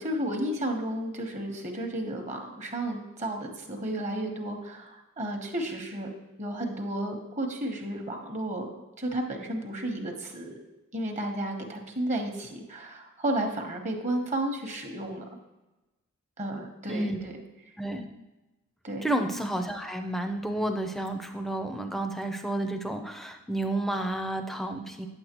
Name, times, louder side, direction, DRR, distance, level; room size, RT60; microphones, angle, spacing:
voice 1, 0.0-6.1 6.4-8.7 9.0-10.6 10.9-15.2 16.4-17.3 18.8-19.1, right 1 dB, 30° right, 3 dB, 1.1 m, -32 dB
voice 2, 16.9-17.2 17.8-18.1 19.0-25.1, right 1 dB, ahead, 5 dB, 0.5 m, -31 dB
9.4 x 7.8 x 3.0 m, 1.1 s
head